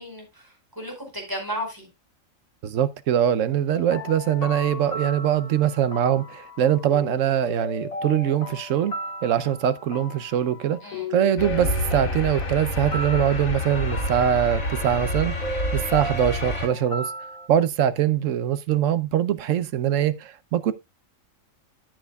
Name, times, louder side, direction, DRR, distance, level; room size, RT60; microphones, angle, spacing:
voice 1, 0.0-1.9 10.8-11.1, equal, 15° right, 4.6 m, -34 dB
voice 2, 2.6-8.9 9.2-15.3 15.7-17.1 17.5-20.7, right 10 dB, 70° right, 1.0 m, -23 dB
sound 1, 3.7-17.5, left 1 dB, 35° left, 0.8 m, -36 dB
sound 2, 11.4-16.7, left 1 dB, 85° left, 2.8 m, -28 dB
13.5 x 7.7 x 2.3 m
omnidirectional pair, 1.4 m